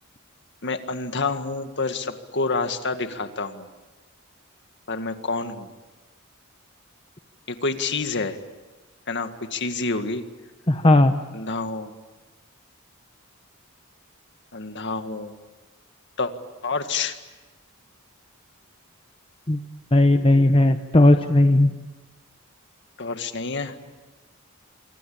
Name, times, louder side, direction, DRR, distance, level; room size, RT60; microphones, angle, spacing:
voice 1, 0.6-3.7 4.9-5.7 7.5-8.4 9.1-10.2 11.3-11.9 14.5-15.3 16.2-16.3 16.6-17.2 23.0-23.7, left 3 dB, 55° left, 8 dB, 1.9 m, -28 dB
voice 2, 10.7-11.2 19.5-19.6 19.9-21.7, left 1 dB, 25° left, 7 dB, 1.0 m, -16 dB
26.0 x 25.0 x 8.7 m, 1.2 s
head